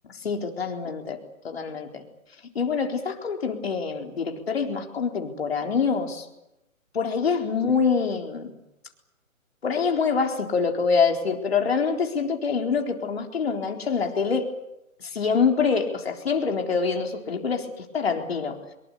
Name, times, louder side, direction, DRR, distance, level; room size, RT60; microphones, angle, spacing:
voice 1, 0.2-2.0 2.5-6.3 6.9-8.5 9.6-14.5 15.0-18.6, left 5 dB, 45° left, 3 dB, 4.1 m, -25 dB
24.5 x 22.5 x 8.6 m, 0.88 s
hypercardioid pair, 175°, 42 cm